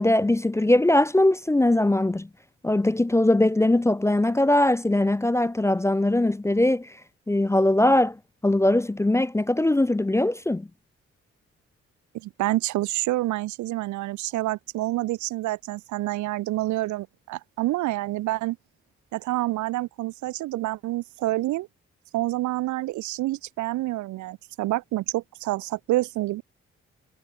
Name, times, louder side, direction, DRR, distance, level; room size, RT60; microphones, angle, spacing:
voice 1, 0.0-2.3 2.6-6.9 7.3-8.2 8.4-10.7, left 1 dB, 10° left, 0.4 m, -21 dB
voice 2, 12.1-18.6 19.1-21.7 22.1-26.4, right 17 dB, 85° right, 0.7 m, -28 dB
supercardioid pair, 50°, 29 cm